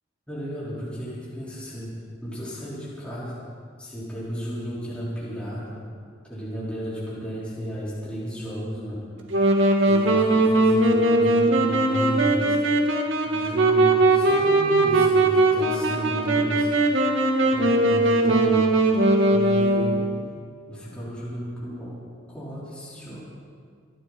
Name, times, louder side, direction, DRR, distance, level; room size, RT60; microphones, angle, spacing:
voice 1, 0.3-1.9 2.2-3.4 3.8-5.8 6.3-9.0 9.9-12.6 13.3-16.7 17.5-18.6 19.3-20.1 20.7-22.0 22.3-23.2, equal, 5° left, -10 dB, 4.6 m, -33 dB
Wind instrument woodwind instrument, 9.3-20.2, right 2 dB, 85° right, 1.9 m, -20 dB
26.0 x 11.0 x 4.4 m, 2.1 s
head